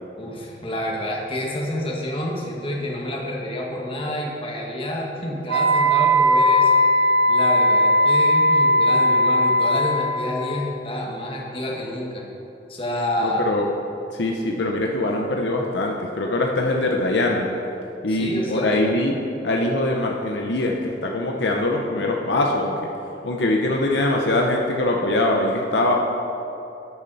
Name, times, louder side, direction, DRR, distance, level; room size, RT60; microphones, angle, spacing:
voice 1, 0.2-6.8 7.3-12.3 12.7-13.4 18.1-18.8, left 1 dB, 30° left, -1 dB, 1.6 m, -28 dB
Wind instrument woodwind instrument, 5.5-10.3, equal, 85° right, 1.3 m, -18 dB
voice 2, 13.2-13.7 14.1-17.6 18.0-19.2 19.4-22.9 23.2-25.9, left 2 dB, 70° left, 0 dB, 0.8 m, -22 dB
12.5 x 8.7 x 4.1 m, 2.8 s
head